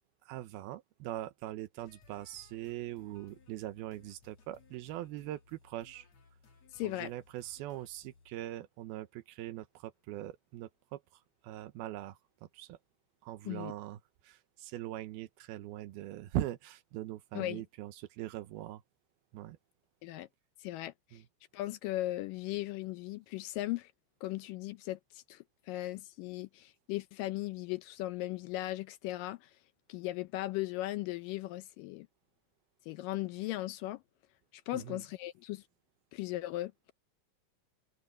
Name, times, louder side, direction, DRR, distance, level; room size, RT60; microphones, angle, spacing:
voice 1, 0.3-6.1 6.8-11.0 11.4-12.2 12.5-12.8 13.2-14.0 14.2-18.8 19.3-19.6 21.1-21.2 34.7-35.0, right 14 dB, 85° right, 2.8 m, -41 dB
sound 1, 1.8-8.4, left 4 dB, 45° left, 3.8 m, -62 dB
voice 2, 6.7-7.1 13.5-13.7 17.3-17.6 20.0-20.3 20.6-21.2 21.5-23.9 24.2-29.6 29.9-32.1 32.9-34.0 34.5-35.6 36.1-36.7, left 16 dB, 80° left, 2.1 m, -37 dB
omnidirectional pair, 4.3 m